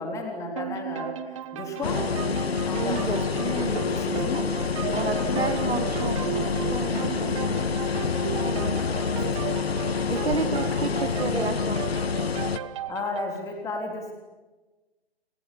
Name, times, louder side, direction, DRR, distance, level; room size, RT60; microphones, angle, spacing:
voice 1, 0.0-2.0 2.6-5.5 7.4-7.6 8.1-9.4 10.2-10.5 12.9-14.1, left 3 dB, 10° left, 3 dB, 3.7 m, -35 dB
sound 1, 0.6-13.4, right 10 dB, 30° right, 1.2 m, -36 dB
sound 2, 1.8-12.6, left 5 dB, 70° left, 1.9 m, -27 dB
voice 2, 2.7-3.8 4.3-4.5 4.9-7.4 8.4-8.8 10.1-11.9, right 4 dB, 75° right, 7 dB, 3.7 m, -31 dB
29.0 x 27.5 x 7.0 m, 1.2 s
hypercardioid pair, 150°, 32 cm